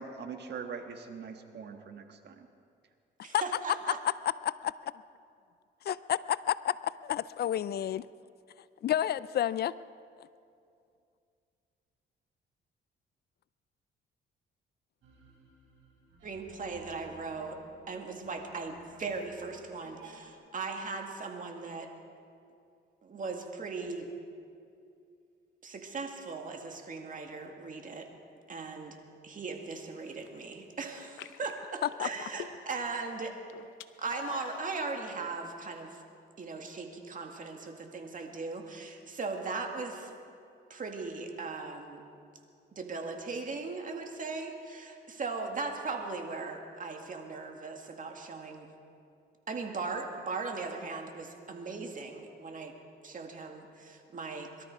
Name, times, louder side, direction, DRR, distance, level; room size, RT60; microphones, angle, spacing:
voice 1, 0.0-2.5, right 5 dB, 60° right, 6 dB, 1.4 m, -42 dB
voice 2, 3.2-4.0 16.2-17.6 17.9-21.9 23.0-24.1 25.6-28.1 28.5-29.0 29.2-33.3 34.0-36.0 36.4-40.1 40.7-42.0 42.8-48.7 49.5-52.8 53.0-54.6, right 4 dB, 40° right, 3 dB, 2.1 m, -38 dB
voice 3, 5.9-8.1 8.8-9.7 10.2-10.3 32.0-32.1, left 11 dB, 55° left, 17 dB, 0.4 m, -30 dB
sound 1, 15.0-20.3, right 3 dB, 80° right, 4.0 m, -56 dB
sound 2, 30.0-30.5 31.0-32.9 33.2-34.8, left 11 dB, 85° left, 0.7 m, -45 dB
22.5 x 13.0 x 4.9 m, 2.5 s
cardioid pair, 90°, 20 cm